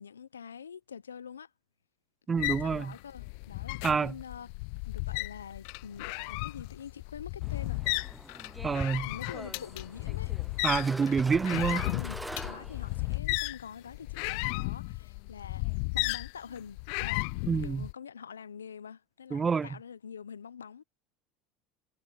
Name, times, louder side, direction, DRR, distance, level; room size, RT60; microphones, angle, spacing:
voice 1, 0.0-1.5 2.3-4.5 4.9-8.2 9.0-10.3 10.7-11.1 11.9-17.3 17.6-20.8, left 7 dB, 85° left, 1.1 m, -46 dB
voice 2, 2.3-2.9 3.8-4.1 8.6-9.1 10.6-11.9 17.5-17.9 19.3-19.7, right 5 dB, 25° right, 0.4 m, -27 dB
sound 1, 2.4-17.9, left 30 dB, 65° left, 1.0 m, -34 dB
sound 2, 7.4-13.2, right 1 dB, 5° right, 0.7 m, -43 dB
hypercardioid pair, 70°, 0 cm